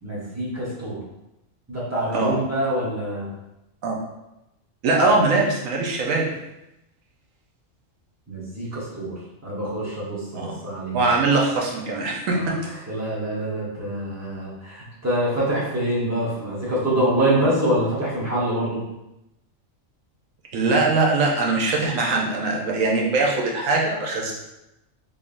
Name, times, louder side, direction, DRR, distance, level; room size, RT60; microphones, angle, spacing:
voice 1, 0.0-1.0 1.7-3.3 8.3-11.2 12.3-12.6 12.9-18.8, right 1 dB, 15° right, -7 dB, 1.0 m, -25 dB
voice 2, 4.8-6.2 10.3-10.5 10.9-12.5 20.5-24.3, right 3 dB, 85° right, -1 dB, 1.2 m, -21 dB
3.7 x 3.4 x 2.5 m, 0.91 s
omnidirectional pair, 1.3 m